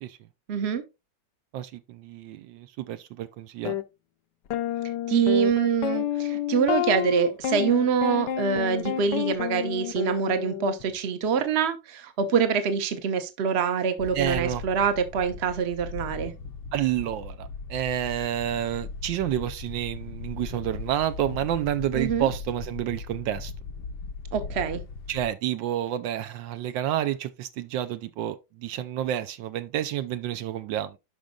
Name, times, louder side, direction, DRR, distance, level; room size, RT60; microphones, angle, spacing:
voice 1, 0.5-0.8 5.1-16.3 22.0-22.3 24.3-24.8, right 6 dB, 45° right, 1.0 m, -25 dB
voice 2, 1.5-3.7 14.1-14.6 16.7-23.5 25.1-31.0, right 11 dB, 75° right, 1.3 m, -29 dB
sound 1, 3.7-3.8 4.5-10.8, left 11 dB, 70° left, 1.2 m, -29 dB
Wind, 14.0-25.3, left 4 dB, 90° left, 1.7 m, -38 dB
11.5 x 5.2 x 2.3 m
omnidirectional pair, 2.1 m